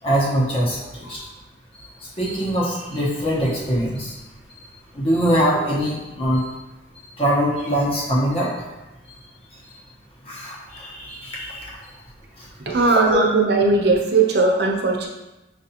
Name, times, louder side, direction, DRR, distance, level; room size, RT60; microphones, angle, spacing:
voice 1, 0.0-1.2 2.2-4.1 4.9-6.5 7.2-8.5 10.3-11.7 12.7-13.2, equal, 30° left, -4 dB, 0.9 m, -22 dB
voice 2, 12.7-15.1, right 3 dB, 55° right, 0 dB, 0.7 m, -18 dB
6.5 x 2.5 x 2.8 m, 1.0 s
head